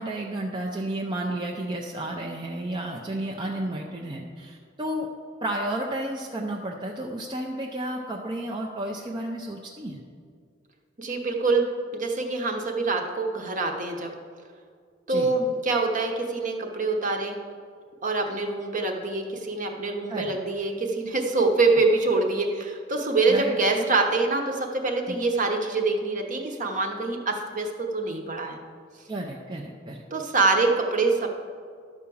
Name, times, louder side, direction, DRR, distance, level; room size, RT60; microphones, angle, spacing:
voice 1, 0.0-5.1 5.4-10.0 15.1-15.3 20.1-20.3 23.3-23.9 25.1-25.2 29.1-30.0, right 1 dB, 25° right, -1 dB, 0.6 m, -32 dB
voice 2, 11.0-11.7 11.9-14.1 15.1-17.4 18.0-28.6 30.1-31.3, right 3 dB, 45° right, 3 dB, 1.0 m, -25 dB
11.5 x 4.8 x 7.0 m, 2.1 s
head